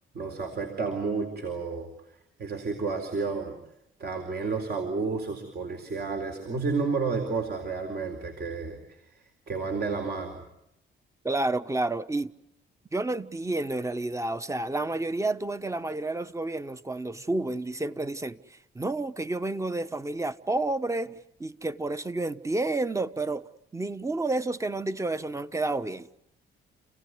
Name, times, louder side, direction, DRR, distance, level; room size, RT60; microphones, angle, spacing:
voice 1, 0.1-1.9 2.4-3.6 4.0-9.0 9.5-10.4, right 4 dB, 55° right, 4.2 m, -31 dB
voice 2, 11.2-12.3 12.9-23.4 23.7-26.1, right 2 dB, 15° right, 1.1 m, -30 dB
29.5 x 17.0 x 9.6 m
cardioid pair, 90°, 20 cm